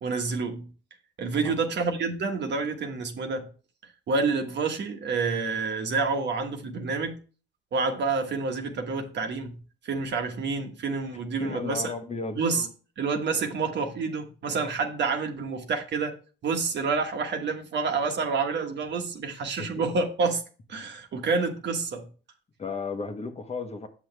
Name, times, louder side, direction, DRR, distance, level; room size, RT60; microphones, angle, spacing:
voice 1, 0.0-0.7 1.2-3.5 4.1-7.2 7.7-9.6 9.8-11.9 12.4-12.7 13.0-16.1 16.4-20.4 20.7-22.1, right 4 dB, 60° right, 1.4 m, -28 dB
voice 2, 11.4-12.4 19.6-19.7 22.6-23.9, left 4 dB, 35° left, 1.1 m, -34 dB
7.9 x 6.1 x 3.3 m
cardioid pair, 90°, 20 cm